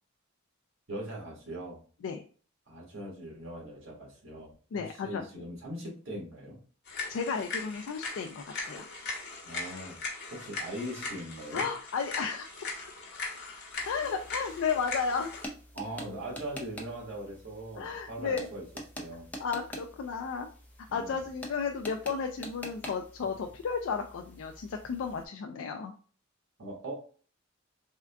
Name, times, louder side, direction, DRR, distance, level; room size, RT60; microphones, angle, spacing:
voice 1, 0.9-1.8 2.7-6.6 9.4-10.0 10.3-11.7 15.7-18.6 19.0-19.3 20.9-21.2 26.6-27.0, right 1 dB, 75° right, -2 dB, 1.5 m, -40 dB
voice 2, 4.7-5.2 7.1-8.9 11.5-12.5 13.9-15.4 17.8-18.5 19.4-20.5 20.9-25.9, left 5 dB, 75° left, 4 dB, 0.4 m, -33 dB
sound 1, 6.9-15.5, left 3 dB, 55° left, 1.1 m, -39 dB
sound 2, 13.7-25.3, equal, 10° left, 0.6 m, -47 dB
3.6 x 2.3 x 3.4 m, 0.41 s
head